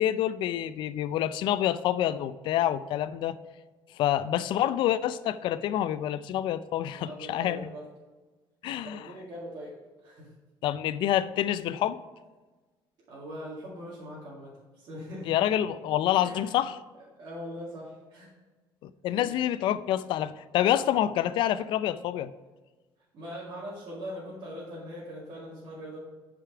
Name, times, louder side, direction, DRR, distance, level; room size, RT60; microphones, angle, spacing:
voice 1, 0.0-3.4 4.0-7.7 8.6-9.0 10.6-12.0 15.3-16.8 18.8-22.3, left 11 dB, 65° left, 15 dB, 0.4 m, -27 dB
voice 2, 6.9-7.9 8.8-10.3 13.1-15.4 16.1-16.6 17.2-18.3 19.1-19.4 23.1-26.0, equal, 50° right, -7 dB, 2.2 m, -41 dB
8.9 x 5.1 x 4.8 m, 1.3 s
cardioid pair, 155°, 9 cm